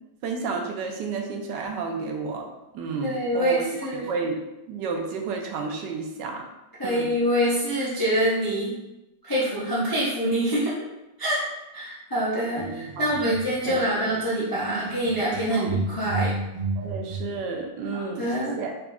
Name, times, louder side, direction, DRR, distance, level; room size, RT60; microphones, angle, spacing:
voice 1, 0.2-2.5 2.7-3.6 3.9-6.5 6.8-7.1 13.0-13.4 13.7-14.0 14.7-14.9 15.5-15.7 16.8-18.7, right 4 dB, 85° right, 2 dB, 1.3 m, -31 dB
voice 2, 3.0-4.0 6.8-8.7 9.2-10.8 11.2-16.3 17.9-18.6, equal, 35° left, -8 dB, 0.3 m, -25 dB
sound 1, 12.5-14.3 14.5-17.4, right 3 dB, 65° right, 0.5 m, -32 dB
3.9 x 3.5 x 2.3 m, 0.96 s
omnidirectional pair, 1.9 m